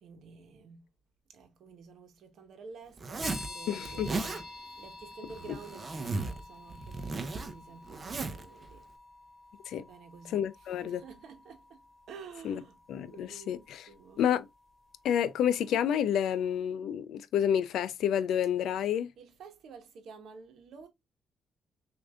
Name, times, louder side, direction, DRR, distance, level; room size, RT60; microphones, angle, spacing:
voice 1, 0.0-0.9 1.3-8.8 9.8-14.2 19.2-20.9, right 5 dB, 70° right, 1.0 m, -51 dB
Zipper (clothing), 3.0-3.5 3.9-4.4 5.3-6.4 6.7-8.5, right 3 dB, 30° right, 0.7 m, -36 dB
sound 1, 3.2-15.7, left 3 dB, 30° left, 1.8 m, -50 dB
voice 2, 3.7-4.1 9.7-9.8 10.3-11.0 12.4-12.6 12.9-13.9 14.2-14.4 15.0-19.1, left 9 dB, 80° left, 0.4 m, -29 dB
6.2 x 2.6 x 2.3 m
cardioid pair, 90°, 0 cm